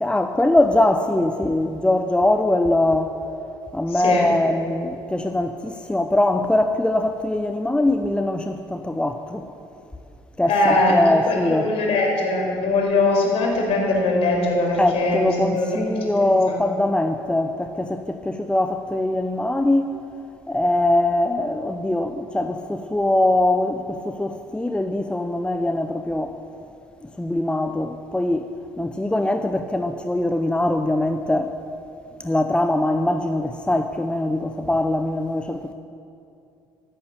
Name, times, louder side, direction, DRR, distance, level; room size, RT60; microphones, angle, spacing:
voice 1, 0.0-3.2 3.7-9.5 10.4-11.7 14.8-19.9 20.5-26.3 27.2-28.5 28.8-31.5 32.2-35.7, left 1 dB, 10° left, 7 dB, 0.8 m, -22 dB
voice 2, 3.9-4.3 10.5-16.6, left 2 dB, 55° left, 0 dB, 4.7 m, -21 dB
15.0 x 10.0 x 8.2 m, 2.6 s
figure-of-eight pair, 55°, 12 cm